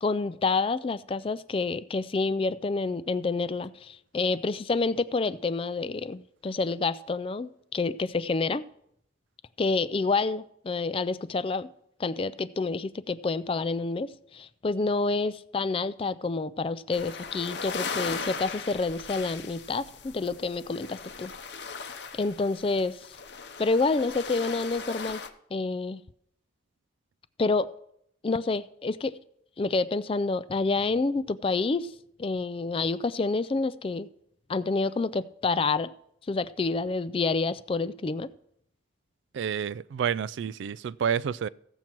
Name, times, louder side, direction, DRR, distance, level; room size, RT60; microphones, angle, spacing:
voice 1, 0.0-8.6 9.6-11.7 12.0-21.3 22.1-23.1 23.6-25.2 25.5-26.0 27.4-27.7 28.2-29.1 29.6-31.9 32.2-34.1 34.5-35.9 36.3-38.3, left 3 dB, 30° left, 0.3 m, -28 dB
sound 1, 16.9-25.3, left 5 dB, 60° left, 0.8 m, -38 dB
voice 2, 39.3-41.5, right 7 dB, 70° right, 0.3 m, -29 dB
15.5 x 7.3 x 4.5 m
head